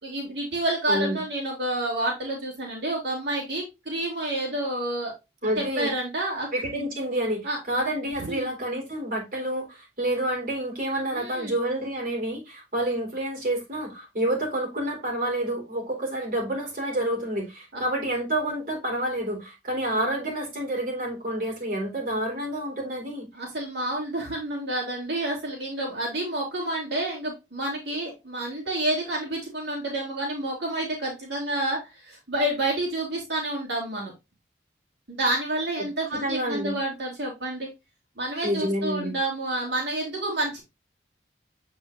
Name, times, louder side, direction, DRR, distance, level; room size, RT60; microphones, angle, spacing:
voice 1, 0.0-5.1 5.6-6.5 6.8-6.9 7.4-7.6 8.2-8.5 11.1-11.6 23.3-34.1 35.1-37.7 38.2-40.6, right 1 dB, 70° right, 3.2 m, -29 dB
voice 2, 0.9-1.2 5.4-5.9 6.5-23.3 35.8-36.8 38.4-39.1, right 1 dB, 50° right, 4.2 m, -29 dB
7.8 x 5.3 x 2.6 m
head